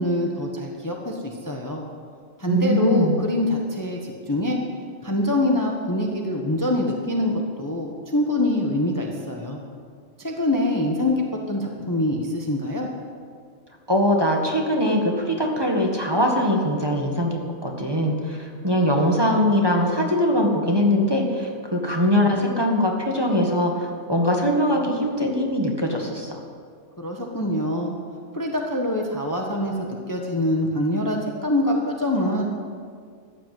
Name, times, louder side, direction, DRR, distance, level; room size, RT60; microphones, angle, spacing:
voice 1, 0.0-1.8 2.4-4.6 5.0-9.6 10.2-12.9 27.0-27.9 28.3-32.4, left 1 dB, 15° left, 0 dB, 1.2 m, -24 dB
voice 2, 2.5-3.2 13.9-26.4, left 1 dB, 20° right, 0 dB, 1.7 m, -22 dB
14.5 x 10.5 x 7.7 m, 2.1 s
omnidirectional pair, 1.4 m